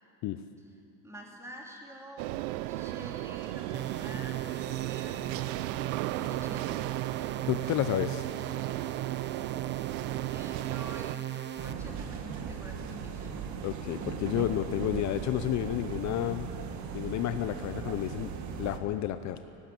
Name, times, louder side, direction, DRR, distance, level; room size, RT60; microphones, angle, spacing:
voice 1, 1.0-5.7 6.1-6.8 10.3-13.4, equal, 5° right, -1 dB, 3.6 m, -47 dB
sound 1, 2.2-11.2, right 17 dB, 80° right, 0.6 m, -36 dB
sound 2, 3.7-11.7, right 11 dB, 30° right, 0.8 m, -37 dB
voice 2, 7.5-8.2 13.6-16.5 16.9-18.3 18.6-19.4, left 13 dB, 45° left, 10 dB, 0.8 m, -31 dB
sound 3, 11.6-18.8, right 7 dB, 50° right, 1.8 m, -38 dB
18.0 x 18.0 x 8.7 m, 2.8 s
supercardioid pair, 130°, 38 cm